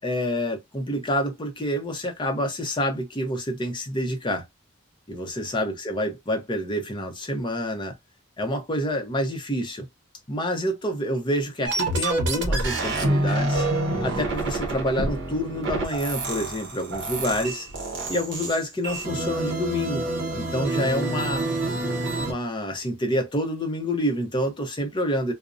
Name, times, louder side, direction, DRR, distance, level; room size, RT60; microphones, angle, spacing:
voice 1, 0.0-4.4 5.1-7.9 8.4-9.9 10.3-13.7 14.0-17.7 18.1-20.1 20.3-21.5 22.2-25.3, equal, 20° left, 0.6 m, -27 dB
sound 1, 11.7-22.3, right 2 dB, 55° right, 0.7 m, -27 dB
2.5 x 2.0 x 2.4 m
head